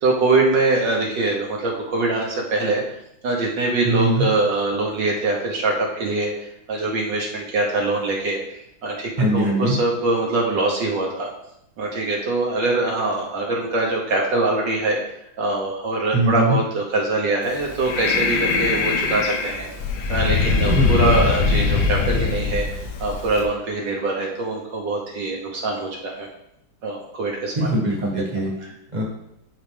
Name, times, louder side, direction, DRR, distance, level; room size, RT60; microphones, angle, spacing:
voice 1, 0.0-2.8 3.2-6.3 6.7-11.3 11.8-15.0 15.4-19.7 20.1-22.7 23.0-26.3 26.8-27.7, right 2 dB, 65° right, -2 dB, 1.6 m, -23 dB
voice 2, 3.8-4.3 9.2-9.7 16.1-16.5 20.6-21.1 27.5-28.5 28.9-29.0, right 1 dB, 25° right, -3 dB, 1.5 m, -21 dB
Breathing, 17.5-23.4, left 4 dB, 60° left, 1.4 m, -22 dB
11.5 x 4.0 x 3.4 m, 0.81 s
omnidirectional pair, 2.3 m